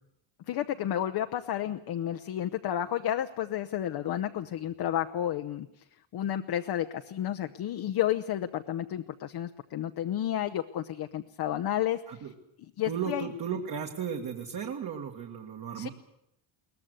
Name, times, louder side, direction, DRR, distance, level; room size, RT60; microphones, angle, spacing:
voice 1, 0.5-5.7 6.1-12.3 12.8-13.3 15.7-15.9, left 11 dB, 50° left, 7 dB, 0.9 m, -31 dB
voice 2, 12.9-15.9, right 7 dB, 45° right, 2 dB, 2.0 m, -35 dB
22.0 x 19.0 x 8.1 m, 0.80 s
cardioid pair, 155°, 49 cm